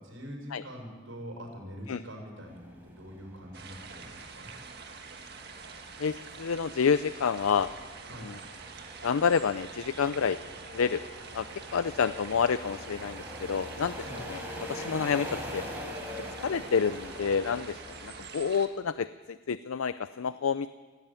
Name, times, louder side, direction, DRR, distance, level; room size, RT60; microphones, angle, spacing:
voice 1, 0.0-4.5 8.1-8.3 14.0-14.2, equal, 75° right, 1 dB, 6.3 m, -44 dB
sound 1, 2.5-18.3, equal, 10° right, 4.4 m, -44 dB
sound 2, 3.5-18.7, right 5 dB, 50° right, 1.8 m, -46 dB
voice 2, 6.0-7.7 8.2-8.4 9.0-10.4 10.7-11.0 11.3-15.7 16.4-20.7, left 6 dB, 90° left, 14 dB, 0.5 m, -29 dB
17.5 x 17.0 x 9.0 m, 1.4 s
head